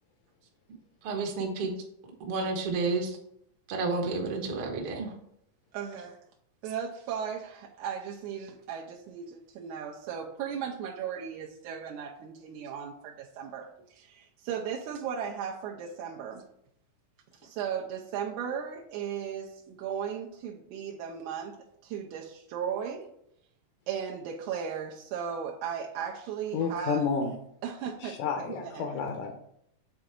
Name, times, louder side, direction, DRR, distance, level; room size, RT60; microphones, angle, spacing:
voice 1, 1.0-1.7 2.2-3.2 3.7-5.1, right 3 dB, 65° right, 0 dB, 1.4 m, -30 dB
voice 2, 5.7-6.2 6.6-16.4 17.4-21.6 21.8-23.1 23.9-27.0 27.6-28.2 28.5-28.9, right 7 dB, 80° right, 0 dB, 1.8 m, -36 dB
voice 3, 26.5-27.4 28.0-29.4, left 5 dB, 75° left, 4 dB, 2.0 m, -30 dB
7.1 x 3.8 x 4.4 m, 0.73 s
omnidirectional pair, 4.0 m